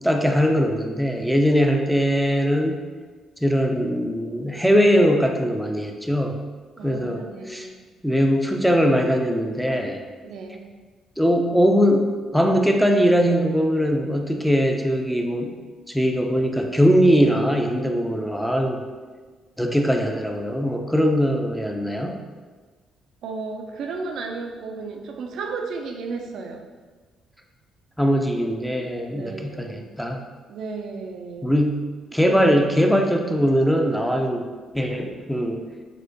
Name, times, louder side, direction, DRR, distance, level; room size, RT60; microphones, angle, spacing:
voice 1, 0.0-2.8 3.4-6.4 6.8-7.7 8.0-10.0 11.2-12.1 12.3-15.5 15.9-18.8 19.6-22.2 28.0-30.2 31.4-31.8 32.1-34.5 34.7-35.6, equal, ahead, 3 dB, 0.4 m, -21 dB
voice 2, 6.8-7.8 10.2-10.7 23.2-26.6 29.2-29.9 30.5-31.5 32.1-32.5, right 4 dB, 65° right, 2 dB, 0.3 m, -34 dB
4.3 x 2.1 x 2.6 m, 1.4 s
hypercardioid pair, 45°, 0 cm